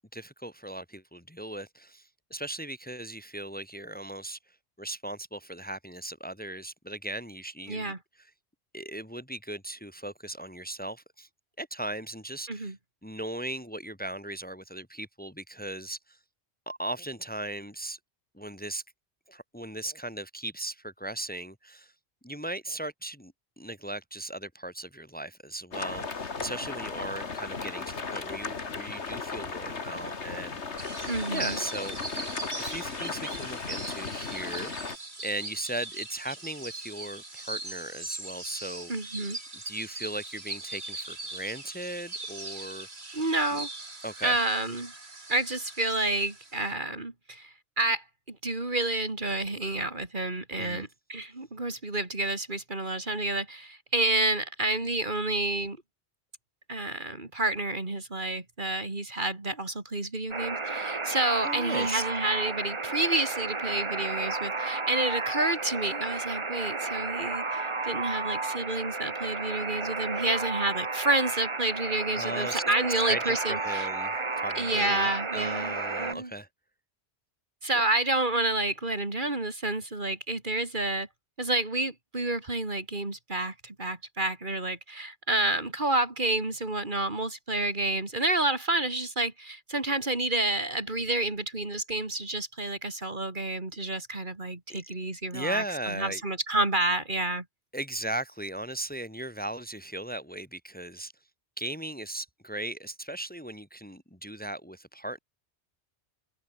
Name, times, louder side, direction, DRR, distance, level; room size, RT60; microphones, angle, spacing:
voice 1, 0.1-4.4 4.8-8.3 8.7-11.3 11.6-12.7 13.0-16.2 16.7-18.0 18.3-18.8 19.3-21.9 22.2-30.9 31.3-32.2 32.6-38.9 39.7-43.2 43.5-43.6 44.0-44.4 50.6-50.9 61.4-62.0 72.1-72.6 73.0-76.5 94.7-94.8 95.3-96.2 97.7-101.1 101.6-105.2, right 1 dB, 10° left, 2.3 m, -37 dB
voice 2, 7.7-8.0 12.5-12.8 31.1-31.6 38.9-39.4 43.1-43.7 44.2-44.9 45.3-55.8 56.7-73.9 74.6-76.3 77.6-81.1 81.4-97.4, right 2 dB, 45° right, 3.0 m, -29 dB
sound 1, 25.7-35.0, left 4 dB, 85° left, 2.3 m, -36 dB
sound 2, 30.8-46.7, right 2 dB, 70° right, 4.0 m, -40 dB
Alarm, 60.3-76.1, right 3 dB, 25° right, 1.2 m, -32 dB
omnidirectional pair, 1.1 m